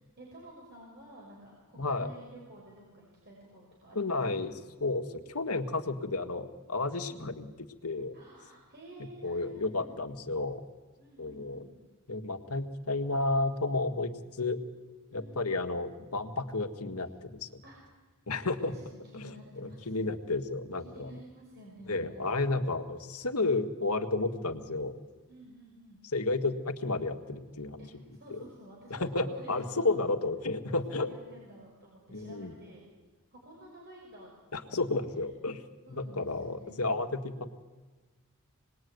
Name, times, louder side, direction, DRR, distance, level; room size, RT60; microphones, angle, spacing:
voice 1, 0.2-4.2 7.0-7.4 8.1-10.0 11.0-11.7 15.1-15.5 17.6-17.8 18.7-19.9 20.8-22.3 24.3-24.6 25.3-26.0 27.8-27.9 28.2-30.1 30.7-32.9 33.3-34.3 34.7-35.2 35.8-36.8, right 1 dB, 50° right, -3 dB, 6.1 m, -52 dB
voice 2, 1.8-2.1 4.0-7.5 7.8-8.2 9.2-10.6 11.2-11.7 12.1-14.6 15.1-17.6 18.3-18.7 19.1-21.1 21.9-25.0 26.1-27.8 28.3-28.4 28.9-31.1 32.1-32.5 34.5-35.6 35.9-37.5, left 3 dB, 90° left, 6 dB, 1.8 m, -32 dB
27.0 x 20.5 x 9.5 m, 1.3 s
head